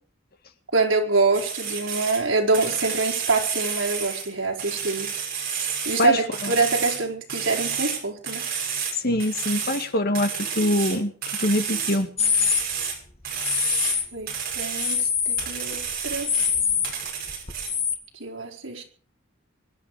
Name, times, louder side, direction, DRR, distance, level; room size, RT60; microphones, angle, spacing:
voice 1, 0.7-5.1 5.8-8.5 14.1-16.3 18.2-18.8, right 3 dB, 75° right, 1 dB, 4.8 m, -25 dB
sound 1, 1.3-2.2 2.5-4.3 4.6-7.0 7.3-8.9 9.2-9.9 10.1-13.0 13.2-14.0 14.3-15.0 15.4-16.5 16.8-17.7, right 7 dB, 50° right, 6.3 m, -30 dB
voice 2, 6.0-6.5 9.0-11.1 11.4-12.1, left 1 dB, 50° left, 8 dB, 2.0 m, -24 dB
sound 2, 12.2-12.6 13.4-14.1 14.5-15.5 15.8-18.0, left 7 dB, 30° left, 2.0 m, -24 dB
24.5 x 11.5 x 5.0 m, 0.42 s
head